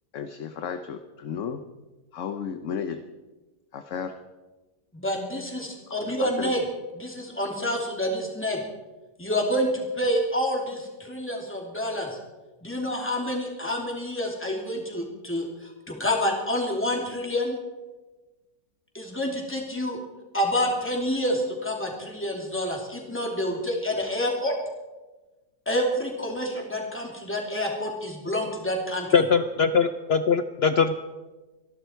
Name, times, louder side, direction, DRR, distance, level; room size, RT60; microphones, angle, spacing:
voice 1, 0.1-1.6 2.1-3.0 3.7-4.1 6.0-6.5, left 7 dB, 55° left, 8 dB, 1.0 m, -33 dB
voice 2, 4.9-6.6 7.0-8.6 9.2-12.2 12.6-17.6 18.9-20.0 20.3-24.5 25.7-29.1, equal, 5° left, 0 dB, 2.9 m, -28 dB
voice 3, 29.1-30.9, left 6 dB, 80° left, 11 dB, 0.5 m, -21 dB
25.5 x 11.5 x 4.6 m, 1.2 s
omnidirectional pair, 1.8 m